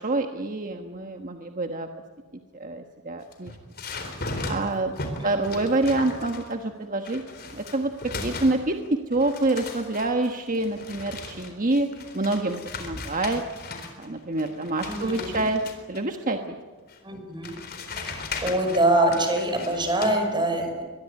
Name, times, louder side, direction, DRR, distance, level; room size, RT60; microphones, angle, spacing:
voice 1, 0.0-1.9 2.5-3.5 4.5-4.9 5.2-7.2 7.5-11.9 12.1-13.4 14.0-15.6 15.9-16.5, right 2 dB, 35° right, 5 dB, 1.3 m, -27 dB
sound 1, 3.2-6.6 7.0-8.9 9.1-14.1 14.4-16.0 16.9-17.0 17.4-20.1, left 3 dB, 45° left, 4.1 m, -37 dB
voice 2, 5.2-5.6 14.9-15.4 17.0-17.5 18.0-20.8, right 1 dB, 20° right, 5 dB, 5.7 m, -25 dB
24.0 x 21.0 x 9.4 m, 1.4 s
head